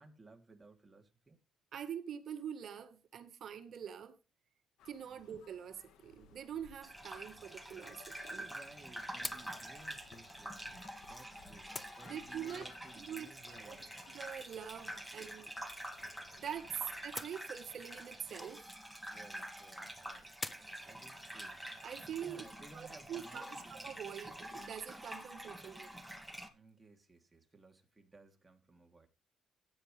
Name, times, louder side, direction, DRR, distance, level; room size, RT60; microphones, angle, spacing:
voice 1, 0.0-1.4 5.0-5.2 8.3-13.9 14.9-15.2 19.0-21.6 22.2-23.8 25.2-25.4 26.5-29.1, right 3 dB, 20° right, 3.1 m, -59 dB
voice 2, 1.7-4.2 4.8-8.3 12.0-12.7 13.0-13.3 13.6-13.8 14.1-15.5 16.4-16.7 17.0-18.6 21.8-22.4 22.7-26.0, right 8 dB, 65° right, 1.6 m, -45 dB
sound 1, 4.8-17.1, left 8 dB, 85° left, 1.6 m, -62 dB
Gurgling / Bathtub (filling or washing), 6.8-26.5, right 1 dB, ahead, 2.6 m, -47 dB
sound 2, 6.9-8.4 9.2-11.3 11.7-16.4 17.2-19.6 20.4-20.8, left 2 dB, 15° left, 1.1 m, -51 dB
15.5 x 10.0 x 3.4 m
cardioid pair, 90°, 0 cm